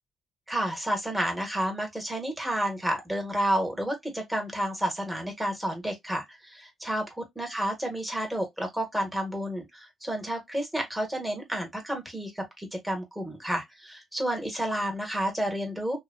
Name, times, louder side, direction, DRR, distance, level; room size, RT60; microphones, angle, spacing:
voice 1, 0.5-16.0, right 1 dB, 5° right, 1.2 m, -30 dB
2.8 x 2.2 x 2.5 m
cardioid pair, 90°, 0 cm